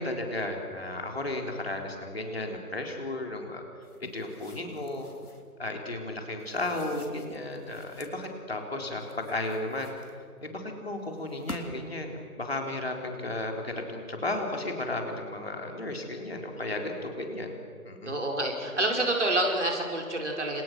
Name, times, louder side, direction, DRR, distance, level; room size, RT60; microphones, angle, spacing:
voice 1, 0.0-3.6 4.1-5.1 5.6-9.9 10.4-17.5 17.8-18.1, left 2 dB, 40° left, 2 dB, 3.9 m, -34 dB
sound 1, 3.8-5.5 6.4-8.2 8.9-10.5 11.2-12.0, left 2 dB, 75° left, 3.8 m, -47 dB
voice 2, 18.1-20.6, right 1 dB, 50° right, 1 dB, 5.2 m, -28 dB
29.5 x 28.0 x 6.3 m, 2.2 s
figure-of-eight pair, 165°, 45 cm